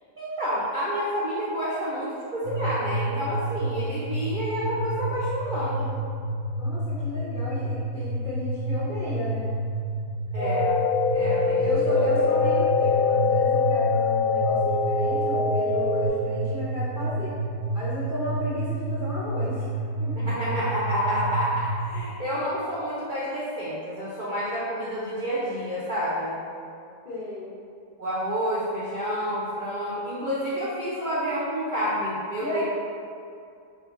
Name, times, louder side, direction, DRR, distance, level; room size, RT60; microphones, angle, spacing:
voice 1, 0.2-5.9 10.3-10.8 11.1-12.0 20.2-26.3 28.0-32.6, equal, 65° right, -9 dB, 0.4 m, -29 dB
sound 1, 2.4-22.0, right 1 dB, 85° left, 1.2 m, -30 dB
voice 2, 6.5-9.5 11.6-17.5 17.7-19.7 20.0-20.1 27.0-27.6 32.4-32.6, left 1 dB, 60° left, -10 dB, 0.5 m, -34 dB
sound 2, 10.4-16.1, left 4 dB, 40° right, 1.0 m, -23 dB
4.7 x 3.4 x 2.5 m, 2.5 s
omnidirectional pair, 1.8 m